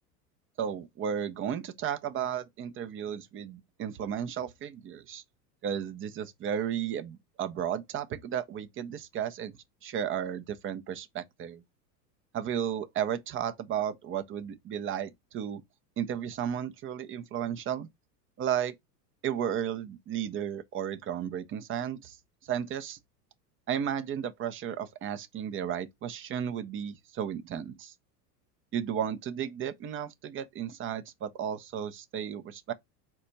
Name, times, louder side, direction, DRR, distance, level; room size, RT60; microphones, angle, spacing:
voice 1, 0.6-5.2 5.6-9.5 9.8-11.6 12.3-15.6 16.0-17.9 18.4-18.8 19.2-22.2 22.5-23.0 23.7-27.9 28.7-32.7, right 9 dB, 25° right, 0.5 m, -34 dB
4.1 x 2.3 x 3.9 m
hypercardioid pair, 95°, 48 cm